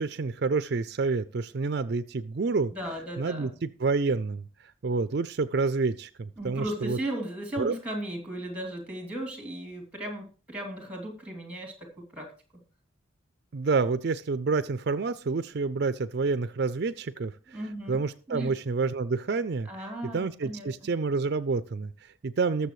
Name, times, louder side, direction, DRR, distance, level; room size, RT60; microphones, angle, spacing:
voice 1, 0.0-2.7 3.2-4.4 4.8-7.0 7.6-7.7 13.5-17.6 17.9-19.7 20.1-22.7, right 4 dB, 55° right, 13 dB, 0.4 m, -28 dB
voice 2, 2.7-3.5 6.4-12.3 12.5-12.6 17.5-18.0 18.3-18.5 19.7-20.7, right 1 dB, 5° right, 2 dB, 2.9 m, -36 dB
20.0 x 6.9 x 3.2 m, 0.37 s
head